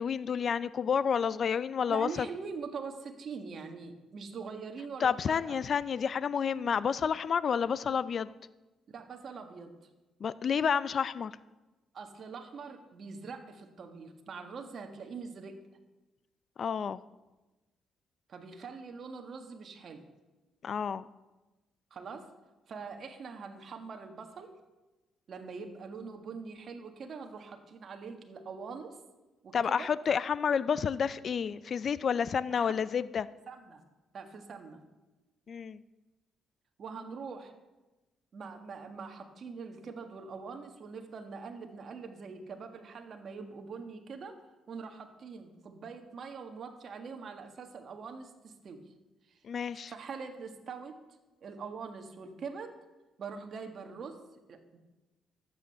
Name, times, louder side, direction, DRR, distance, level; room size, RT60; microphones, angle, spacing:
voice 1, 0.0-2.1 5.0-8.3 10.2-11.3 16.6-17.0 20.6-21.0 29.5-33.3 35.5-35.8 49.5-49.9, left 7 dB, 50° left, 16 dB, 0.4 m, -30 dB
voice 2, 1.9-5.6 8.9-9.8 11.9-15.6 18.3-20.0 21.9-22.3 22.7-24.5 25.3-29.0 29.4-29.9 32.5-32.8 33.5-33.8 34.1-34.8 36.8-37.5 38.3-44.4 44.7-48.8 49.3-49.4 49.9-51.0 51.4-52.7 53.2-54.2 54.5-54.8, right 5 dB, 55° right, 5 dB, 1.6 m, -43 dB
12.0 x 8.4 x 6.9 m, 1.1 s
cardioid pair, 90°, 0 cm